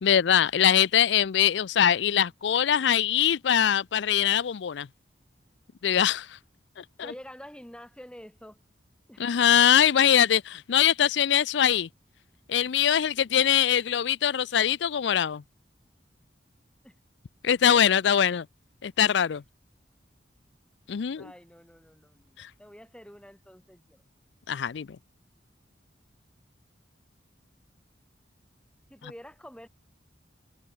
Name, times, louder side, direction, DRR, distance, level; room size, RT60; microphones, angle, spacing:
voice 1, 0.0-4.9 5.8-6.4 6.8-6.9 9.2-11.9 12.5-15.4 17.4-18.4 18.8-19.4 20.9-21.3 22.4-22.5 24.5-24.9, left 9 dB, 75° left, 0.4 m, -22 dB
voice 2, 7.0-8.6 9.1-9.3 16.8-17.0 17.7-17.8 21.1-24.0 28.9-29.7, equal, 5° left, 7.8 m, -47 dB
head